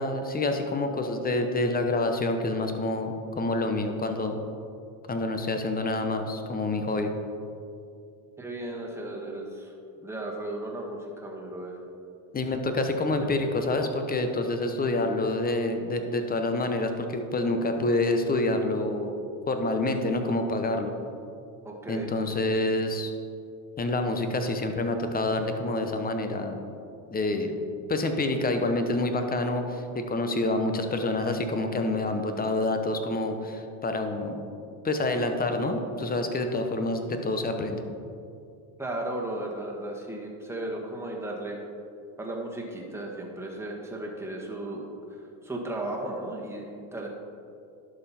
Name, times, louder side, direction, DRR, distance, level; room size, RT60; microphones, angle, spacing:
voice 1, 0.0-4.4 5.1-7.1 12.3-19.1 19.5-20.9 21.9-23.1 23.8-26.6 27.1-27.6 27.9-34.4 34.8-37.8, left 2 dB, 20° left, 6 dB, 0.9 m, -27 dB
voice 2, 8.4-9.7 10.0-11.8 13.2-13.4 21.6-22.1 38.8-41.6 42.2-44.9 45.4-47.1, right 1 dB, 5° right, -2 dB, 1.6 m, -35 dB
11.5 x 5.5 x 4.3 m, 2.5 s
supercardioid pair, 100°, 43 cm